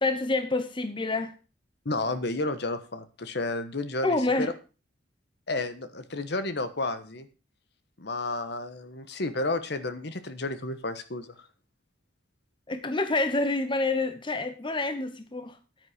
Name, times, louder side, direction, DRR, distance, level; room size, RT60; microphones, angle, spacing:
voice 1, 0.0-1.3 4.0-4.5 12.7-15.6, left 2 dB, 25° left, 0.9 m, -27 dB
voice 2, 1.8-4.5 5.5-7.3 8.0-11.3, left 2 dB, 60° left, 1.3 m, -31 dB
9.7 x 9.5 x 5.0 m
head